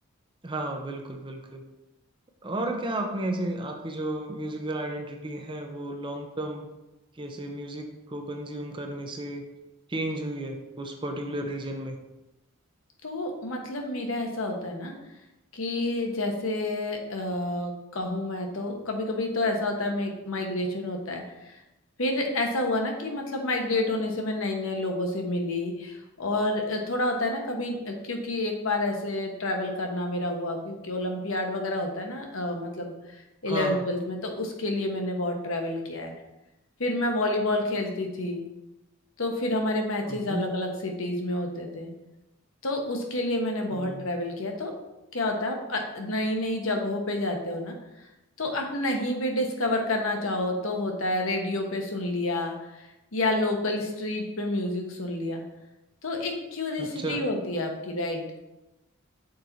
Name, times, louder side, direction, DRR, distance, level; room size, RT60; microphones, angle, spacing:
voice 1, 0.4-1.6 2.4-6.7 7.2-9.4 9.9-12.0 33.5-33.8 40.1-40.4 43.7-44.1 56.8-57.2, right 1 dB, 20° right, 4 dB, 0.6 m, -33 dB
voice 2, 13.0-14.9 15.5-21.6 22.0-36.1 36.8-38.4 39.2-41.9 42.6-44.7 45.1-47.8 48.4-55.4 56.0-58.2, left 1 dB, 65° left, 2 dB, 1.1 m, -29 dB
6.5 x 4.4 x 4.0 m, 0.97 s
head